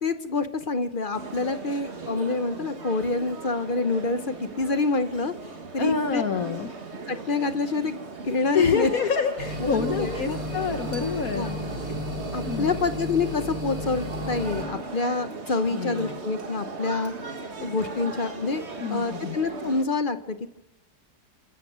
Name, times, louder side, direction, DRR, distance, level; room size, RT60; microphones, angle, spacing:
voice 1, 0.0-5.3 5.7-6.2 7.1-8.9 9.6-10.4 11.3-11.6 12.3-17.1 17.6-20.5, left 3 dB, 40° left, 10 dB, 0.7 m, -27 dB
sound 1, 1.1-19.8, right 4 dB, 40° right, 1.9 m, -38 dB
voice 2, 5.8-6.7 8.5-11.5 12.4-12.8 15.7-16.2 18.8-19.4, left 6 dB, 60° left, 7 dB, 1.4 m, -27 dB
sound 2, 9.4-14.6, equal, 60° right, 4.4 m, -33 dB
29.0 x 14.5 x 6.2 m, 0.90 s
omnidirectional pair, 1.8 m